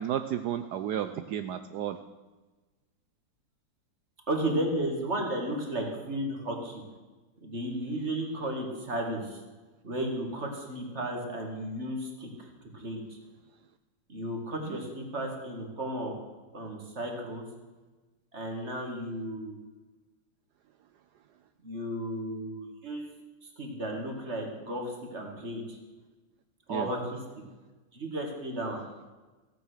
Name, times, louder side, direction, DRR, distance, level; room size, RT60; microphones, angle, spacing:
voice 1, 0.0-2.0 26.7-26.9, right 10 dB, 85° right, 10 dB, 0.9 m, -32 dB
voice 2, 4.3-6.8 7.4-9.4 9.8-12.5 12.7-13.2 14.1-16.1 16.5-17.5 18.3-19.6 21.6-23.1 23.4-25.8 26.7-27.2 27.9-28.8, right 1 dB, 30° right, 1 dB, 2.4 m, -34 dB
15.0 x 9.4 x 6.4 m, 1.2 s
omnidirectional pair, 2.4 m